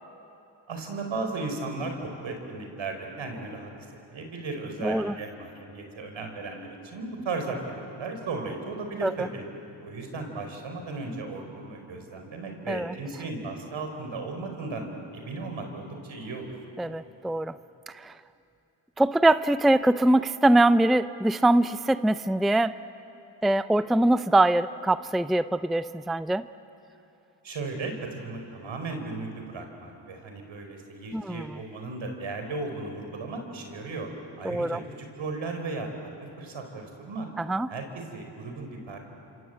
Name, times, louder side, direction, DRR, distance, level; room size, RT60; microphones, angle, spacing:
voice 1, 0.7-3.9 4.1-9.4 9.8-16.5 27.4-34.1 34.4-36.1 36.4-37.3 37.7-39.0, right 3 dB, 70° right, 4 dB, 4.8 m, -36 dB
voice 2, 4.8-5.1 9.0-9.1 12.7-12.9 16.8-17.5 18.0-18.1 19.0-22.7 23.4-26.4 31.1-31.5 34.4-34.8 37.4-37.7, right 1 dB, ahead, 14 dB, 0.5 m, -23 dB
27.0 x 26.5 x 7.9 m, 2.9 s
supercardioid pair, 50°, 49 cm